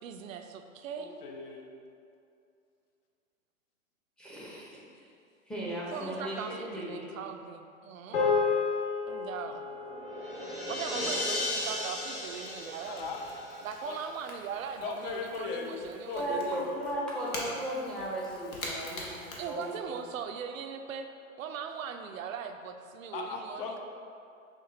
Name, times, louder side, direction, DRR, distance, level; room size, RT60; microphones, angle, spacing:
voice 1, 0.0-1.2 5.9-8.4 9.1-9.7 10.7-13.1 13.6-16.7 19.4-21.1 21.4-23.8, right 7 dB, 70° right, 6 dB, 0.5 m, -40 dB
voice 2, 1.0-1.7 12.9-13.2 13.9-14.0 14.8-16.8 23.1-23.8, left 5 dB, 45° left, 2 dB, 0.6 m, -38 dB
voice 3, 4.2-4.7 5.5-7.1 16.2-19.8, right 1 dB, ahead, -7 dB, 0.6 m, -36 dB
sound 1, 8.1-12.7, left 5 dB, 60° left, 1.3 m, -33 dB
sound 2, 9.5-14.1, left 1 dB, 25° left, 1.0 m, -36 dB
Crackle / Crack, 10.7-20.2, left 1 dB, 85° left, 1.1 m, -46 dB
5.8 x 2.3 x 3.8 m, 2.5 s
hypercardioid pair, 120°, 41 cm